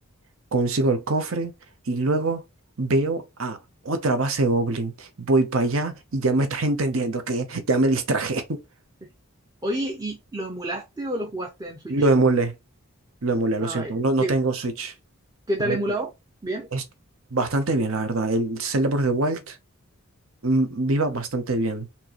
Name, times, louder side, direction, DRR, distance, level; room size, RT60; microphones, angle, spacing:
voice 1, 0.5-1.5 1.9-2.4 2.8-3.6 3.8-8.6 11.9-12.5 13.2-14.9 15.6-15.8 16.7-16.8 17.3-19.6 20.4-21.9, right 2 dB, 70° right, 0.8 m, -23 dB
voice 2, 9.6-12.1 13.6-13.9 14.2-14.4 15.5-16.1 16.4-16.7, right 1 dB, 15° right, 0.5 m, -29 dB
4.4 x 2.8 x 3.0 m
head